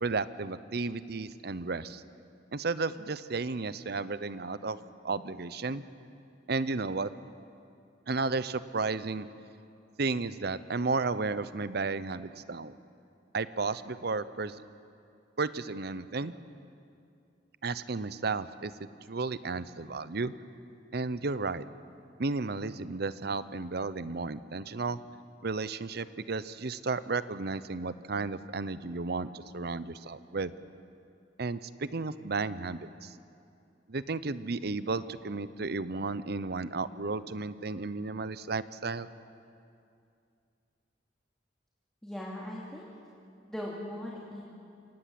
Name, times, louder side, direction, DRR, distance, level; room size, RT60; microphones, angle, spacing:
voice 1, 0.0-2.0 2.5-5.8 6.5-7.1 8.1-9.3 10.0-12.8 13.3-14.6 15.4-16.3 17.6-20.3 20.9-21.6 22.2-25.0 25.4-30.5 31.4-33.1 33.9-39.1, right 3 dB, 60° right, 15 dB, 0.7 m, -33 dB
voice 2, 42.0-42.9 43.5-44.4, left 1 dB, 5° left, -5 dB, 2.5 m, -39 dB
26.0 x 18.5 x 7.7 m, 2.5 s
head